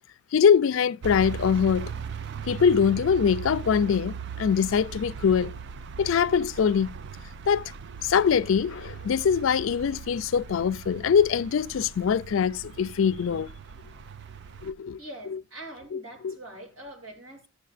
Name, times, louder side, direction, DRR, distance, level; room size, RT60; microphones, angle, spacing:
voice 1, 0.3-1.9 2.5-5.5 6.0-6.9 7.5-7.7 8.0-13.5 14.6-15.0 15.9-16.3, left 7 dB, 70° left, 0.4 m, -23 dB
sound 1, 1.0-14.7, right 7 dB, 55° right, 0.3 m, -39 dB
voice 2, 15.0-17.5, right 1 dB, 85° right, 3.1 m, -43 dB
13.0 x 7.1 x 2.4 m
head